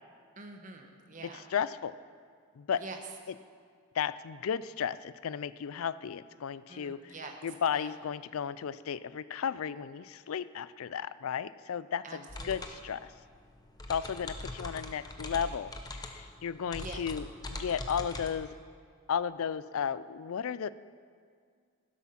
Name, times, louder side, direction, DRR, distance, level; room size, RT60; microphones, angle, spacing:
voice 1, 0.4-1.5 2.8-3.0 6.7-7.3 7.7-7.9 12.0-12.8 16.8-17.0, right 3 dB, 35° right, 3 dB, 1.2 m, -46 dB
voice 2, 1.5-1.9 2.6-2.8 4.0-7.0 7.4-13.1 13.9-18.5 19.1-20.7, left 7 dB, 75° left, 16 dB, 0.4 m, -34 dB
sound 1, 12.3-18.3, left 2 dB, 20° left, 0.8 m, -42 dB
12.0 x 12.0 x 5.8 m, 2.1 s
head